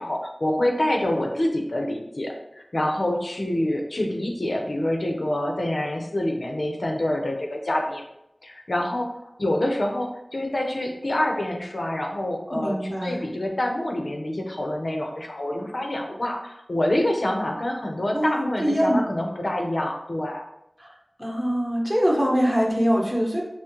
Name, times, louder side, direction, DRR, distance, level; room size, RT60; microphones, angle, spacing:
voice 1, 0.0-8.0 8.4-9.1 9.4-20.4, left 1 dB, 70° left, 1 dB, 0.7 m, -26 dB
voice 2, 12.5-13.2 18.1-19.0 20.8-20.9 21.2-23.4, equal, 5° right, -3 dB, 1.2 m, -23 dB
6.1 x 2.1 x 3.0 m, 0.84 s
wide cardioid pair, 45°, 0 cm